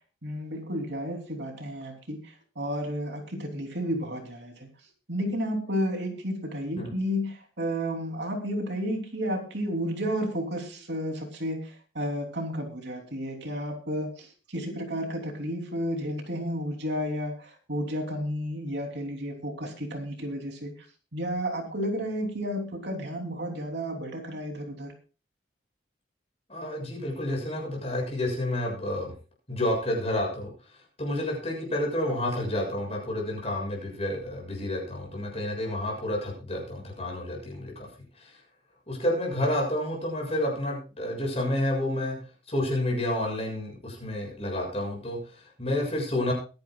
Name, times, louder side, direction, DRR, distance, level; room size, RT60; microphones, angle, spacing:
voice 1, 0.2-2.2 2.5-4.7 5.1-20.7 21.1-24.9, equal, 60° right, 2 dB, 3.2 m, -32 dB
voice 2, 26.5-29.1 29.5-37.9 38.2-38.4 38.9-42.2 42.5-46.3, left 1 dB, 30° left, 0 dB, 7.0 m, -30 dB
23.0 x 10.5 x 2.4 m, 0.34 s
head